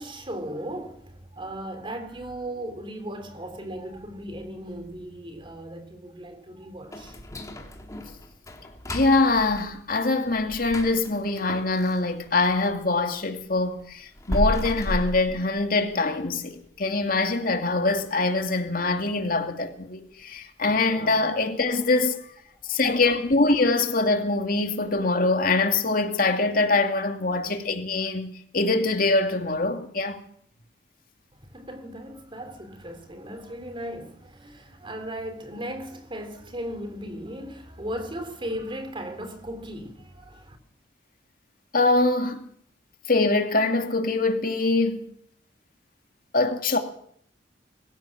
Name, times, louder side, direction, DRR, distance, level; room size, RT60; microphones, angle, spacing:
voice 1, 0.0-7.2 20.8-21.3 31.3-40.6, right 1 dB, 30° right, 3.5 m, -37 dB
sound 1, 6.9-12.8 13.2-16.1 16.4-16.5 17.0-17.1 17.6-18.0 18.3-18.4 18.9-19.0, equal, 20° left, 3.3 m, -34 dB
voice 2, 8.9-22.2 22.6-30.2 41.7-42.5 43.1-45.0 46.3-46.8, left 3 dB, 55° left, 2.6 m, -24 dB
23.5 x 15.5 x 7.3 m
head